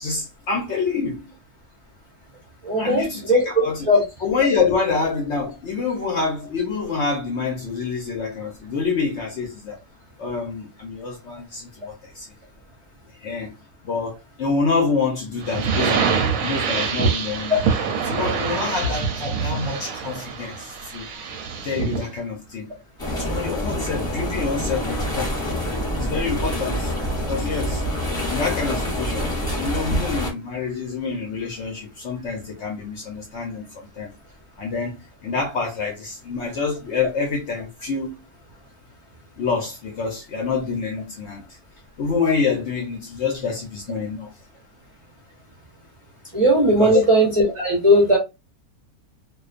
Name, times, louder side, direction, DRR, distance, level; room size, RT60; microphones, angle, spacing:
voice 1, 0.0-1.3 2.8-3.9 4.2-9.8 10.2-12.3 13.2-13.5 13.8-16.1 16.4-17.7 17.9-21.1 21.6-22.7 23.2-25.4 25.7-26.9 27.3-27.8 28.3-34.1 34.6-38.2 39.4-41.6 42.0-44.4 46.7-47.0, left 5 dB, 65° left, 0.7 m, -27 dB
voice 2, 2.6-4.0 46.3-47.3 47.5-48.2, right 1 dB, 30° right, 0.5 m, -17 dB
sound 1, 15.4-22.1, right 6 dB, 70° right, 0.9 m, -25 dB
sound 2, 23.0-30.3, equal, 15° left, 1.0 m, -26 dB
2.4 x 2.2 x 2.4 m
omnidirectional pair, 1.6 m